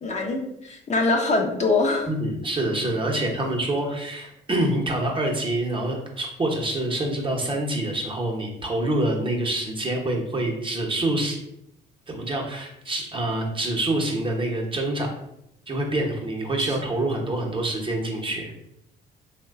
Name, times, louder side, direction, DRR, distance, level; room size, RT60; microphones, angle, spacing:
voice 1, 0.0-2.1 16.6-16.7, left 3 dB, 35° left, 2 dB, 0.6 m, -23 dB
voice 2, 2.1-11.4 12.1-15.1 15.7-18.5, right 1 dB, 25° right, 0 dB, 0.7 m, -26 dB
3.0 x 2.1 x 3.5 m, 0.80 s
cardioid pair, 80°, 19 cm